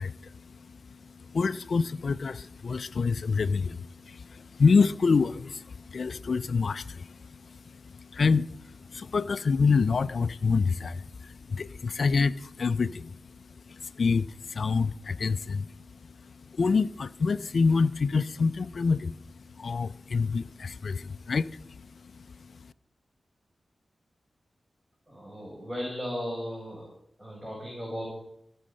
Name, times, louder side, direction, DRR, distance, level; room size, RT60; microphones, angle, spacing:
voice 1, 0.0-22.7, left 4 dB, 70° left, 13 dB, 0.4 m, -28 dB
voice 2, 25.1-26.9 27.2-28.1, equal, 20° right, -3 dB, 5.0 m, -36 dB
16.5 x 6.3 x 6.4 m, 0.75 s
cardioid pair, 50°, 0 cm